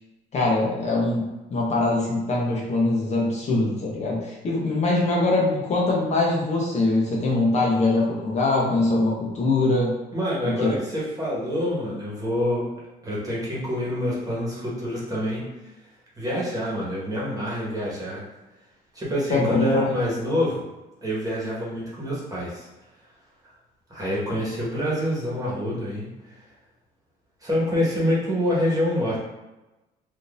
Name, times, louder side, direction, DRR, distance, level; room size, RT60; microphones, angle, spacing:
voice 1, 0.3-9.9 10.4-10.7 19.3-19.9, left 2 dB, 40° left, -3 dB, 0.8 m, -23 dB
voice 2, 10.1-12.7 13.0-15.4 16.2-18.2 18.9-20.6 21.0-22.7 23.9-26.4 27.4-29.2, equal, 20° right, -6 dB, 1.3 m, -26 dB
3.6 x 2.6 x 2.5 m, 1.0 s
cardioid pair, 110°, 17 cm